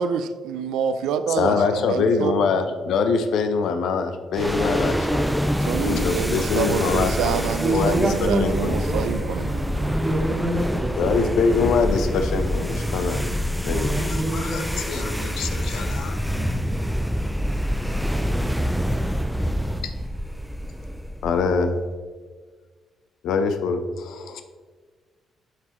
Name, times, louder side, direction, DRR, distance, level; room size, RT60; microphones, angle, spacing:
voice 1, 0.0-2.4 5.6-9.4, right 7 dB, 90° right, 10 dB, 0.4 m, -27 dB
voice 2, 1.4-5.3 5.8-7.4 7.7-8.8 10.9-13.3 13.6-16.2 19.8-19.9 21.2-21.8 23.2-24.4, left 5 dB, 75° left, 8 dB, 0.6 m, -24 dB
sound 1, 4.3-21.7, equal, ahead, 0.4 m, -26 dB
sound 2, 5.6-10.7, right 1 dB, 55° right, 2.0 m, -38 dB
voice 3, 7.3-11.3 13.7-15.8 17.9-18.5, right 1 dB, 15° right, 4 dB, 1.0 m, -28 dB
sound 3, 15.7-16.9, left 1 dB, 40° left, 1.6 m, -39 dB
7.5 x 5.8 x 3.0 m, 1.5 s
cardioid pair, 90°, 0 cm